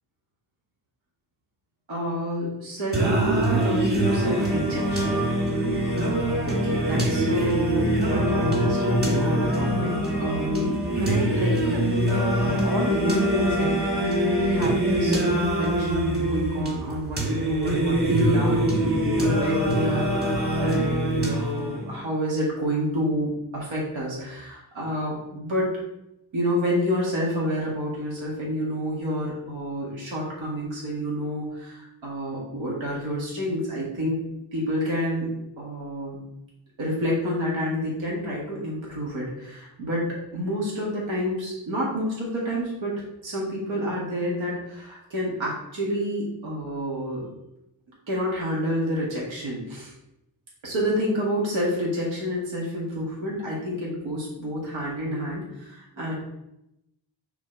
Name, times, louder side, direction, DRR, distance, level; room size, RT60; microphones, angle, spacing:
voice 1, 1.9-5.2 5.6-5.9 6.4-12.1 12.4-20.1 20.6-25.8 26.3-34.2 34.5-35.3 35.6-36.2 36.8-47.3 48.1-49.9 50.6-56.2, equal, 85° right, -5 dB, 1.8 m, -29 dB
Singing, 2.9-21.9, right 1 dB, 20° right, 2.0 m, -24 dB
6.1 x 3.5 x 4.4 m, 0.85 s
cardioid pair, 90°, 45 cm